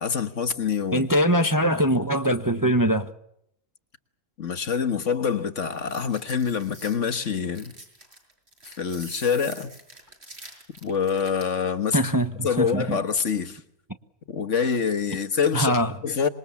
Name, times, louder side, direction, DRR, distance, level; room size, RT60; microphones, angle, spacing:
voice 1, 0.0-1.1 4.4-7.7 8.6-9.7 10.8-12.0 12.4-13.6 14.3-15.8 16.0-16.3, left 6 dB, 55° left, 1.7 m, -26 dB
voice 2, 0.9-3.1 11.9-12.3 12.6-13.0 15.5-15.9, equal, 15° right, 1.0 m, -22 dB
sound 1, 5.7-11.6, right 1 dB, 45° right, 6.5 m, -46 dB
26.0 x 22.0 x 7.1 m
omnidirectional pair, 1.5 m